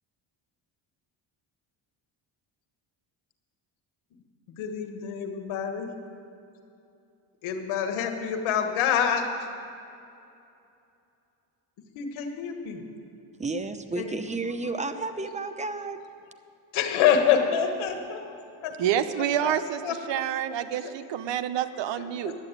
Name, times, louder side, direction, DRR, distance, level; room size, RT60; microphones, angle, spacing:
voice 1, 4.6-5.9 7.4-9.2 11.9-12.8 13.9-14.3 16.7-18.3 18.6-18.7 19.4-19.5 19.8-20.0, left 8 dB, 85° left, 5 dB, 1.5 m, -26 dB
voice 2, 13.4-16.0, right 3 dB, 15° right, 9 dB, 0.8 m, -32 dB
voice 3, 18.8-22.3, right 10 dB, 65° right, 11 dB, 0.8 m, -28 dB
11.5 x 7.9 x 8.9 m, 2.7 s
cardioid pair, 85°, 47 cm